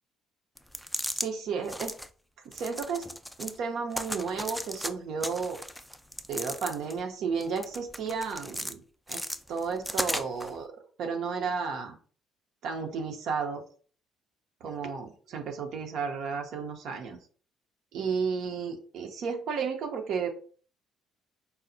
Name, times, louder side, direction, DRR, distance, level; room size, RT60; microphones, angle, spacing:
sound 1, 0.6-1.3 1.6-2.1 2.5-3.6 3.9-4.9 5.2-7.0 7.4-8.7 9.1-10.5, equal, 5° left, 0.3 m, -36 dB
voice 1, 1.1-1.9 2.5-3.1 3.4-5.6 6.3-8.8 9.1-9.2 9.5-10.7 11.0-12.0 12.6-13.6 14.6-17.2 17.9-20.3, right 5 dB, 60° right, 4 dB, 0.5 m, -33 dB
4.2 x 2.0 x 2.6 m, 0.43 s
figure-of-eight pair, 50°, 0 cm